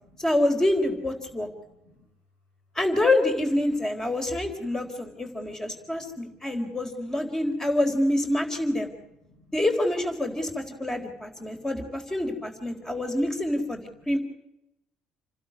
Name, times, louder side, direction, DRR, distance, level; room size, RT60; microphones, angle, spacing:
voice 1, 0.2-1.5 2.7-8.9 9.5-14.2, left 1 dB, 15° left, 5 dB, 4.2 m, -26 dB
voice 2, 1.7-2.1 4.7-5.0 5.3-5.5 5.8-6.7 9.2-9.5 10.9-11.7 12.5-13.0, left 1 dB, 80° left, 1 dB, 7.5 m, -60 dB
29.0 x 12.5 x 9.5 m, 0.87 s
hypercardioid pair, 65°, 3 cm